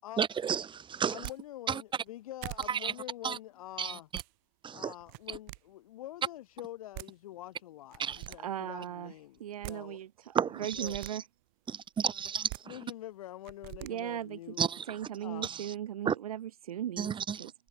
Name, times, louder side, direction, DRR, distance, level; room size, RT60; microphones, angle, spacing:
voice 1, 0.2-1.2 1.7-1.8 2.7-2.9 3.2-3.4 3.8-4.2 4.6-4.9 8.0-8.2 10.3-10.9 11.7-12.5 14.6-14.8 15.4-15.7 16.1-16.2 17.0-17.4, right 7 dB, 25° right, 2.0 m, -32 dB
voice 2, 1.1-4.1 4.7-10.0 10.7-11.0 12.6-14.6 15.2-15.5, left 14 dB, 75° left, 6.9 m, -45 dB
sound 1, 1.1-1.4 2.1-2.2 2.4-2.7 3.9-4.3 5.0-5.6 6.6-6.7 6.9-7.1 7.9-8.4 9.4-9.8 10.6-11.1 12.3-12.6 13.4-13.9, right 40 dB or more, 60° right, 1.4 m, -43 dB
voice 3, 8.4-9.1 9.4-11.2 13.8-14.6 14.9-17.5, right 11 dB, 80° right, 1.8 m, -38 dB
hypercardioid pair, 85°, 18 cm